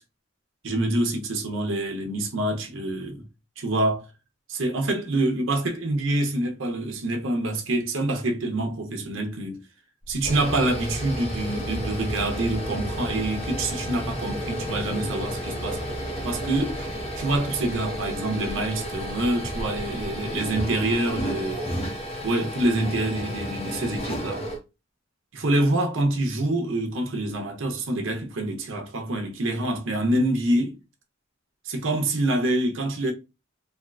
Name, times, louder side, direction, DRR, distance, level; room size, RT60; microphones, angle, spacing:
voice 1, 0.6-3.3 3.6-4.0 4.5-9.6 10.1-15.8 16.2-21.6 22.2-24.5 25.3-30.8 31.6-33.1, right 1 dB, 70° right, 0.8 m, -26 dB
sound 1, 10.0-24.6, equal, 30° left, 0.9 m, -32 dB
3.5 x 2.4 x 2.4 m
head